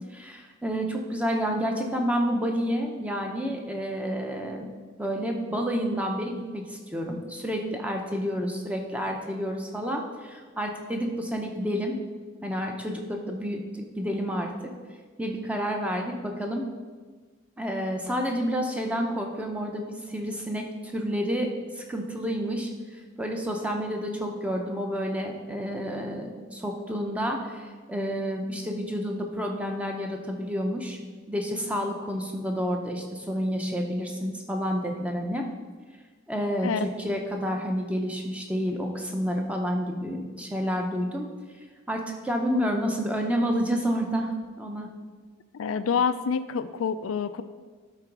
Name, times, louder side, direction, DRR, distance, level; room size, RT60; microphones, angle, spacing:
voice 1, 0.1-4.7 5.0-12.0 12.4-14.5 15.2-16.6 17.6-21.5 21.7-22.7 23.2-31.0 31.3-35.4 36.3-41.3 41.9-44.9, equal, 5° right, 2 dB, 0.7 m, -29 dB
voice 2, 45.5-47.4, left 6 dB, 90° left, 12 dB, 0.4 m, -27 dB
11.5 x 3.9 x 4.7 m, 1.5 s
head